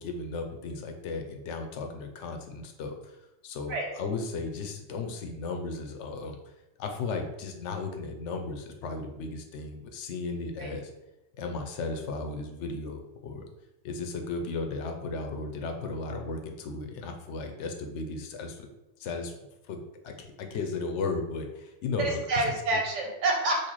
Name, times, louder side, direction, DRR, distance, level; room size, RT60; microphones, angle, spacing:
voice 1, 0.0-3.2 3.4-6.4 6.8-10.9 11.4-13.4 13.8-18.7 19.0-19.3 19.7-22.6, left 3 dB, 75° left, 4 dB, 0.9 m, -35 dB
voice 2, 22.0-23.7, right 2 dB, 80° right, 0 dB, 1.2 m, -28 dB
4.0 x 2.5 x 3.0 m, 0.97 s
omnidirectional pair, 1.2 m